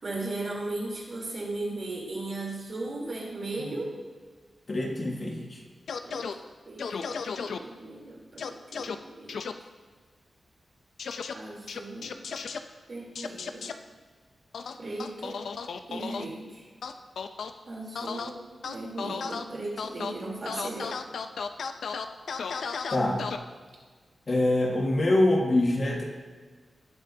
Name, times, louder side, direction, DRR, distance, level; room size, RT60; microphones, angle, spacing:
voice 1, 0.0-3.9 6.0-6.2 6.7-9.4 11.3-12.2 12.9-13.7 14.8-15.5 15.9-16.7 17.7-18.4 18.6-21.0, right 2 dB, 45° right, -3 dB, 3.5 m, -37 dB
voice 2, 4.7-5.6 22.9-23.2 24.3-26.0, left 1 dB, 40° left, 0 dB, 1.7 m, -25 dB
sound 1, 5.9-6.3 6.8-7.6 8.4-8.9 9.3-9.5 11.0-11.3 11.7-12.6 13.1-13.7 14.5-16.2 16.8-17.5 17.9-18.3 18.6-19.4 19.8-20.1 20.5-23.4, left 5 dB, 85° left, 0.6 m, -34 dB
19.0 x 8.7 x 2.8 m, 1.5 s
wide cardioid pair, 130°, 0 cm